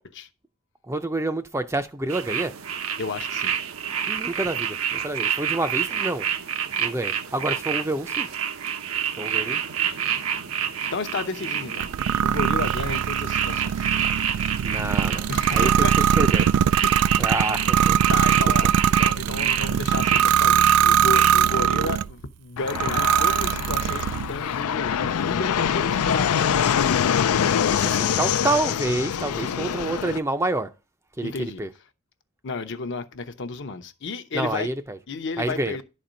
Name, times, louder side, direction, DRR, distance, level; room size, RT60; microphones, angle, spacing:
voice 1, 0.9-2.5 4.1-6.3 6.8-8.3 9.2-9.6 14.6-16.5 17.2-18.0 27.7-30.7 31.2-31.3 31.6-31.7 34.3-35.0 35.4-35.8, right 2 dB, 10° right, 0.5 m, -28 dB
sound 1, 2.1-21.6, right 8 dB, 70° right, 0.8 m, -28 dB
voice 2, 3.0-3.6 10.9-11.9 12.2-13.9 15.3-16.2 16.8-17.2 18.1-18.7 19.0-26.6 29.2-29.9 31.2-31.6 32.4-34.7 35.1-35.8, left 3 dB, 55° left, 0.8 m, -32 dB
sound 2, 11.8-22.1 22.7-24.3, right 9 dB, 85° right, 0.3 m, -21 dB
Fixed-wing aircraft airplane, 22.6-30.2, left 8 dB, 80° left, 0.4 m, -24 dB
11.0 x 4.3 x 5.1 m
head